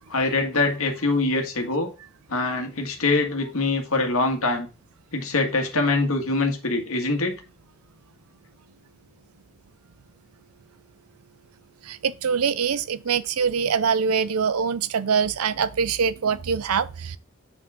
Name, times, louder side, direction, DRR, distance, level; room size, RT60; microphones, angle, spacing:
voice 1, 0.1-1.9 2.3-4.7 5.1-7.4, left 3 dB, 75° left, 1.8 m, -24 dB
voice 2, 11.8-17.2, right 6 dB, 85° right, 0.5 m, -24 dB
7.6 x 5.1 x 3.6 m
head